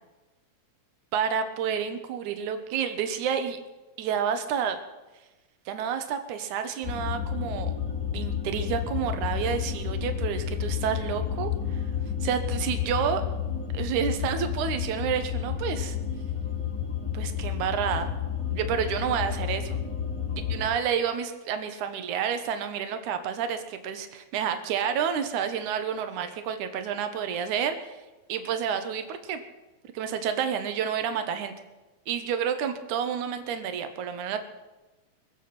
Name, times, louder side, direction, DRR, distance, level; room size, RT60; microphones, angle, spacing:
voice 1, 1.1-3.6 4.0-4.8 5.7-7.7 8.1-11.8 12.2-13.2 13.7-16.0 17.1-18.1 18.5-19.8 20.3-28.0 28.3-29.4 29.9-31.5 32.1-34.4, right 8 dB, 70° right, 8 dB, 2.4 m, -29 dB
sound 1, 6.8-20.7, left 8 dB, 15° left, 1.9 m, -31 dB
23.5 x 8.6 x 5.9 m, 1.1 s
omnidirectional pair, 3.7 m